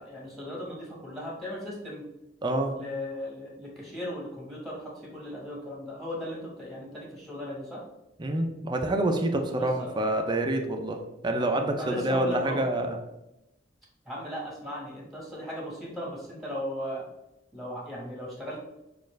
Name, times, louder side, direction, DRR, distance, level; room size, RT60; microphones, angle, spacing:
voice 1, 0.0-2.1 2.7-7.8 9.5-9.9 11.8-12.6 14.0-17.0 17.5-18.6, left 1 dB, ahead, -3 dB, 1.2 m, -37 dB
voice 2, 2.4-2.8 8.2-13.0, right 1 dB, 25° right, 4 dB, 0.5 m, -27 dB
6.4 x 2.5 x 3.2 m, 0.92 s
head